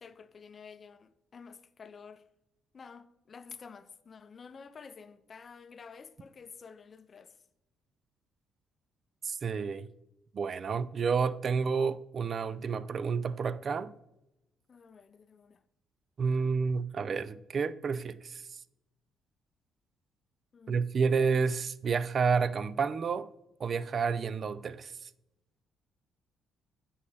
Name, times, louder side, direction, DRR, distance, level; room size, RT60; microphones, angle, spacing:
voice 1, 0.0-2.3 2.7-7.4 14.7-15.6 20.5-20.9, left 5 dB, 40° left, 0.5 m, -50 dB
voice 2, 9.2-9.9 10.3-13.9 16.2-18.4 20.7-23.3 23.6-25.1, right 5 dB, 45° right, 0.4 m, -30 dB
8.5 x 5.4 x 3.4 m
cardioid pair, 90°, 0 cm